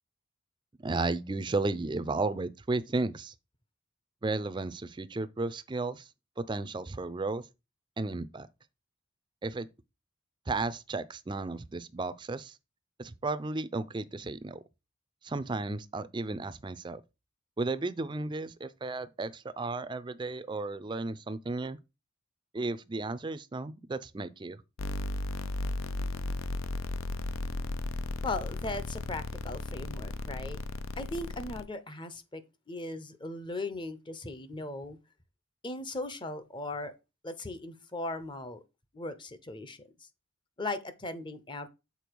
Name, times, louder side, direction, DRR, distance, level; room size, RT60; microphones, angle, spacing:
voice 1, 0.8-3.3 4.2-6.1 6.4-7.4 8.0-8.5 9.4-9.7 10.5-12.6 13.0-14.6 15.2-17.0 17.6-21.8 22.5-24.6, right 3 dB, 20° right, 0.4 m, -34 dB
sound 1, 24.8-31.6, left 2 dB, 80° left, 0.6 m, -35 dB
voice 2, 28.2-30.6 31.0-32.4 32.7-35.0 35.6-36.9 37.2-38.6 38.9-40.1 40.6-41.7, left 2 dB, 25° left, 0.7 m, -38 dB
6.9 x 4.3 x 4.5 m
head